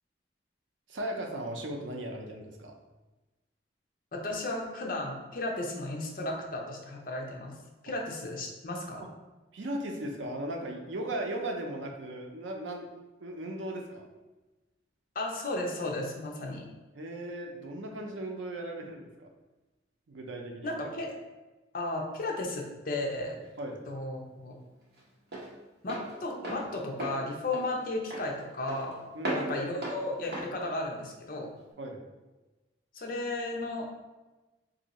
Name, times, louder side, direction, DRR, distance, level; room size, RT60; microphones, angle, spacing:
voice 1, 0.9-2.7 9.5-12.9 13.2-14.1 16.9-19.3 20.1-20.8 23.6-23.8 29.1-29.5 31.8-32.0, right 1 dB, 90° right, 2 dB, 0.6 m, -37 dB
voice 2, 4.1-7.5 7.8-9.0 15.2-16.7 20.6-21.2 21.7-23.4 23.9-24.5 25.8-29.0 29.3-31.5 32.9-33.9, left 2 dB, 50° left, 0 dB, 0.6 m, -34 dB
Walk footsteps, 23.0-31.7, right 1 dB, 55° right, 0.9 m, -39 dB
2.7 x 2.6 x 4.0 m, 1.1 s
head